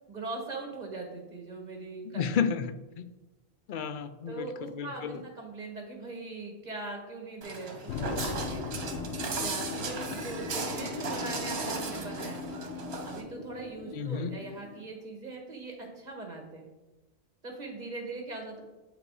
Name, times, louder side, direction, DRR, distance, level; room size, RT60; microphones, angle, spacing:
voice 1, 0.1-2.4 4.3-8.6 9.4-12.4 13.0-16.7 17.4-18.6, right 3 dB, 40° right, 1 dB, 1.6 m, -40 dB
voice 2, 2.0-3.1 3.7-5.2 13.9-14.4, left 7 dB, 60° left, 11 dB, 0.6 m, -32 dB
Walk footsteps, 7.4-13.2, right 4 dB, 75° right, 1.2 m, -36 dB
sound 1, 7.9-14.8, left 6 dB, 85° left, 0.9 m, -39 dB
8.3 x 4.9 x 4.8 m, 1.1 s
omnidirectional pair, 1.1 m